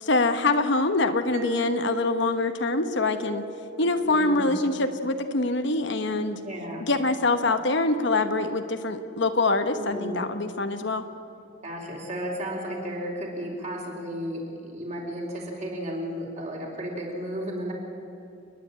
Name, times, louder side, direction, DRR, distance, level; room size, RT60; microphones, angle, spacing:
voice 1, 0.0-3.4 3.8-6.4 6.8-11.1, left 2 dB, 55° left, 8 dB, 1.1 m, -24 dB
Mallet percussion, 1.3-5.9, right 3 dB, 75° right, 0.6 m, -38 dB
voice 2, 4.0-4.6 6.1-6.8 9.7-10.2 11.6-17.7, equal, 35° right, -1 dB, 4.3 m, -34 dB
30.0 x 10.5 x 8.8 m, 2.7 s
head